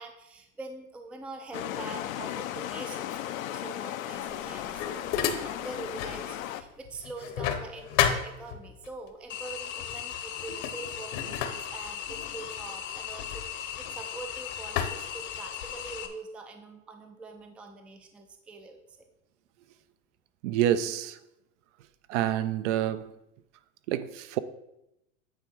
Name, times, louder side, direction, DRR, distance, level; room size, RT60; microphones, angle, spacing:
voice 1, 0.0-5.1 5.4-18.8, right 3 dB, 5° right, 0.4 m, -44 dB
sound 1, 1.5-6.6, left 12 dB, 85° left, 0.7 m, -36 dB
sound 2, 4.2-6.2 6.6-8.9 9.8-10.0 10.4-14.2 14.8-15.9, left 9 dB, 65° left, 1.1 m, -32 dB
sound 3, 9.3-16.1, left 9 dB, 30° left, 0.7 m, -38 dB
voice 2, 20.4-21.2 22.1-23.1 23.9-24.4, right 11 dB, 65° right, 0.6 m, -27 dB
8.8 x 3.5 x 6.1 m
supercardioid pair, 135°, 40 cm